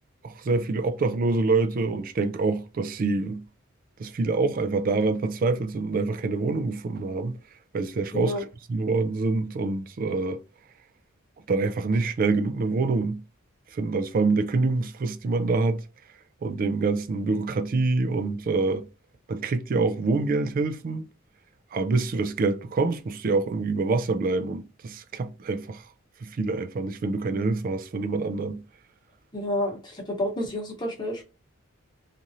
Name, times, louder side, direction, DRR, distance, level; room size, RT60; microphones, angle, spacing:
voice 1, 0.2-3.4 4.0-7.4 7.7-8.3 8.7-10.4 11.5-13.2 13.7-15.8 16.4-18.9 19.3-21.1 21.7-25.8 26.2-28.6, right 3 dB, 45° right, 0.4 m, -26 dB
voice 2, 8.1-8.4 29.3-31.2, left 1 dB, 20° left, 1.0 m, -29 dB
2.9 x 2.5 x 2.6 m
head